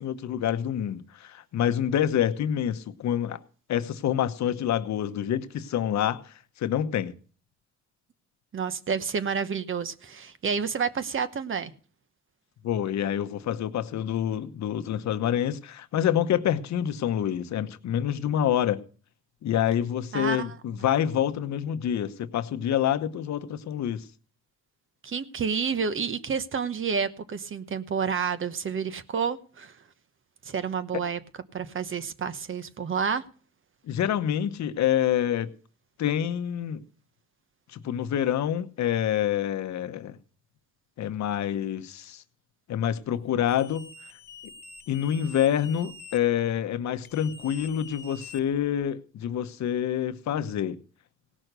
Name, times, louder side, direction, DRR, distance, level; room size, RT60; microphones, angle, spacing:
voice 1, 0.0-3.4 3.7-7.1 12.6-18.8 19.4-24.0 33.9-35.5 36.0-36.8 37.7-40.2 41.0-42.2 42.7-43.9 44.9-50.8, left 10 dB, 65° left, 1.0 m, -27 dB
voice 2, 8.5-11.7 20.1-20.5 25.0-29.8 30.4-31.2 31.5-33.2, right 6 dB, 45° right, 1.0 m, -29 dB
sound 1, 43.5-46.2 47.0-48.8, left 4 dB, 35° left, 1.4 m, -46 dB
17.5 x 6.2 x 6.7 m
cardioid pair, 90°, 30 cm